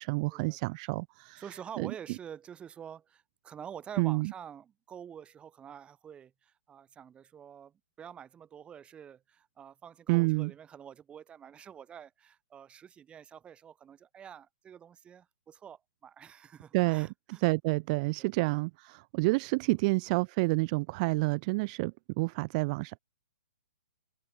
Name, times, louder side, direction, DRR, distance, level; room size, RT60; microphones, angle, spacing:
voice 1, 0.0-1.4 1.8-1.9 4.0-4.3 10.1-10.5 16.7-23.0, right 26 dB, 35° right, 0.6 m, -29 dB
voice 2, 1.4-17.4 18.2-18.3 19.6-19.8, right 8 dB, 15° right, 6.9 m, -48 dB
open air
hypercardioid pair, 140°, 7 cm